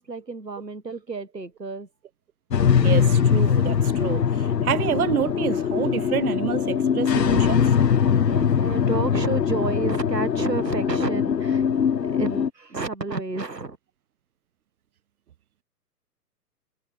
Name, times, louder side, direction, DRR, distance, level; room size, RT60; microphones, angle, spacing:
voice 1, 0.0-1.9 8.2-13.8, right 3 dB, 85° right, 1.8 m, -30 dB
sound 1, 2.5-12.5, left 7 dB, 85° left, 0.6 m, -22 dB
voice 2, 2.8-7.7, right 10 dB, 65° right, 0.5 m, -28 dB
figure-of-eight pair, 120°, 48 cm